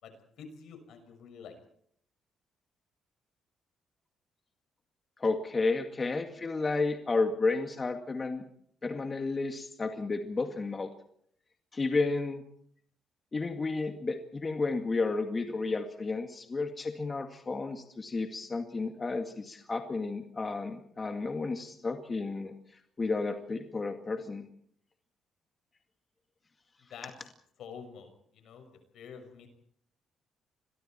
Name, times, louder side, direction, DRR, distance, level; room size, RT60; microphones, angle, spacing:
voice 1, 0.0-1.6 26.8-27.1 27.6-28.7 28.9-29.5, left 6 dB, 75° left, 7 dB, 6.0 m, -48 dB
voice 2, 5.2-8.4 8.8-10.9 11.7-12.4 13.3-24.5, left 3 dB, 30° left, 5 dB, 2.1 m, -32 dB
29.5 x 23.0 x 4.5 m, 0.65 s
cardioid pair, 90°, 0 cm